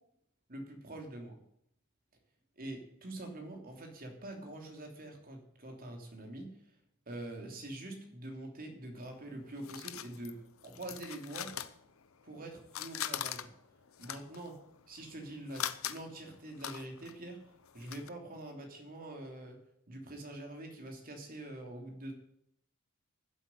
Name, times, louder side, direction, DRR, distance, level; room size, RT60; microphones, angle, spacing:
voice 1, 0.5-1.4 2.6-6.7 7.1-11.5 12.2-13.5 14.0-14.6 14.9-17.4 17.7-19.6 19.9-22.1, right 1 dB, 45° right, 3 dB, 3.2 m, -45 dB
sound 1, 9.0-12.4 12.6-18.1, left 10 dB, 75° left, 0.8 m, -42 dB
12.0 x 8.2 x 10.0 m, 0.74 s
head